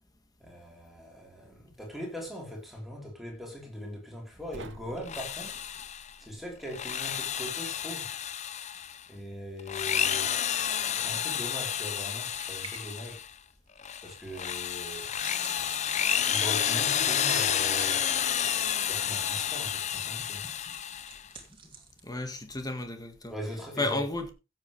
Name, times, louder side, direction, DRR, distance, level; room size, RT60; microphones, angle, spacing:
voice 1, 0.4-5.6 6.2-8.2 9.1-13.2 14.0-15.1 16.3-18.0 18.9-20.5 23.3-24.0, equal, ahead, 4.0 m, -40 dB
sound 1, 4.5-7.6, right 2 dB, 65° right, 1.0 m, -51 dB
Drill, 5.0-6.1 6.6-9.0 9.6-13.3 13.8-21.3, left 9 dB, 35° left, 0.6 m, -30 dB
sound 2, 10.6-23.4, right 5 dB, 25° right, 2.5 m, -52 dB
voice 2, 20.2-20.7 22.0-23.3 23.8-24.3, left 2 dB, 20° left, 1.8 m, -33 dB
15.5 x 7.9 x 3.4 m
head